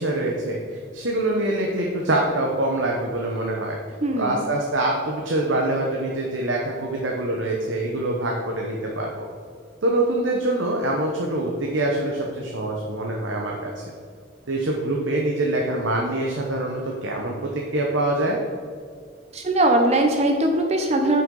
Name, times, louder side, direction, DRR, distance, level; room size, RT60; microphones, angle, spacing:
voice 1, 0.0-3.8 4.2-9.1 9.8-13.8 14.5-18.4, right 1 dB, 70° right, -1 dB, 0.9 m, -25 dB
voice 2, 4.0-4.4 19.3-21.2, right 1 dB, 35° right, 3 dB, 0.6 m, -20 dB
9.1 x 5.7 x 3.8 m, 2.1 s
head